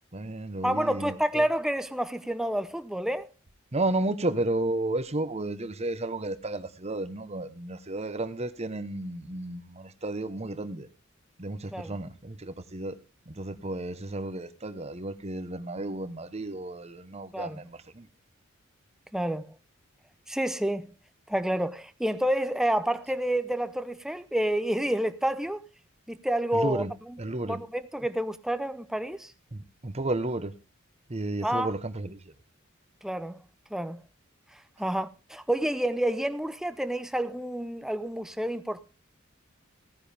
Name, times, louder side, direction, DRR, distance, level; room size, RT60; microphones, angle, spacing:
voice 1, 0.1-1.5 3.7-10.9 11.4-12.9 13.3-18.1 26.5-26.9 27.2-27.6 29.5-30.5 31.1-32.2, right 2 dB, 30° right, 1.1 m, -32 dB
voice 2, 0.6-3.3 11.7-12.0 17.3-17.6 19.1-19.5 20.3-20.9 21.3-25.6 26.1-27.2 27.4-29.3 31.4-31.7 33.0-33.4 33.7-34.0 34.8-38.8, right 1 dB, ahead, 0.7 m, -29 dB
16.5 x 9.9 x 3.4 m
head